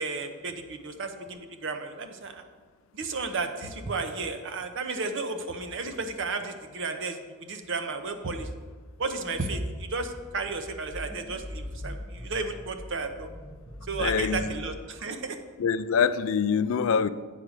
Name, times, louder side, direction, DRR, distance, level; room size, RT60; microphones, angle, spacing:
voice 1, 0.0-2.4 2.9-8.5 9.0-13.3 13.9-15.4, right 3 dB, 60° right, 7 dB, 0.8 m, -33 dB
sound 1, 9.2-14.7, left 1 dB, 30° right, 1.5 m, -41 dB
voice 2, 14.0-14.5 15.6-17.1, left 6 dB, 65° left, 14 dB, 0.4 m, -25 dB
8.5 x 4.9 x 6.5 m, 1.5 s
head